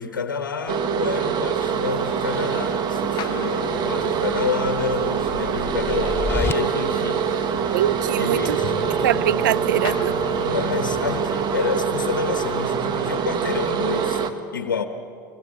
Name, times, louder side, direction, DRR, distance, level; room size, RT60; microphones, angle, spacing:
voice 1, 0.0-7.7 8.2-8.7 10.4-14.2 14.5-14.8, left 5 dB, 90° left, 7 dB, 1.2 m, -28 dB
sound 1, 0.7-14.3, right 7 dB, 45° right, 1.7 m, -24 dB
sound 2, 1.7-12.8, left 11 dB, 45° left, 1.0 m, -40 dB
sound 3, 3.7-6.5, left 5 dB, 20° left, 0.6 m, -31 dB
voice 2, 7.7-8.6 9.0-10.2, right 11 dB, 75° right, 19 dB, 0.5 m, -23 dB
25.0 x 22.0 x 8.6 m, 2.5 s
hypercardioid pair, 85°, 11 cm